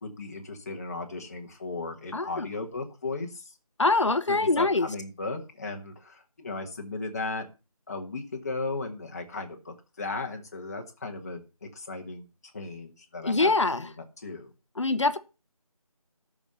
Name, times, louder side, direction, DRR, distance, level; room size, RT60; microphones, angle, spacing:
voice 1, 0.0-3.5 4.3-7.4 7.9-12.3 12.5-13.5 13.8-13.9 14.2-14.5, left 3 dB, 25° left, 1.7 m, -36 dB
voice 2, 2.1-2.5 3.8-4.9 13.2-13.9 14.8-15.2, left 3 dB, 55° left, 1.1 m, -24 dB
11.0 x 6.6 x 7.0 m
figure-of-eight pair, 160°, 19 cm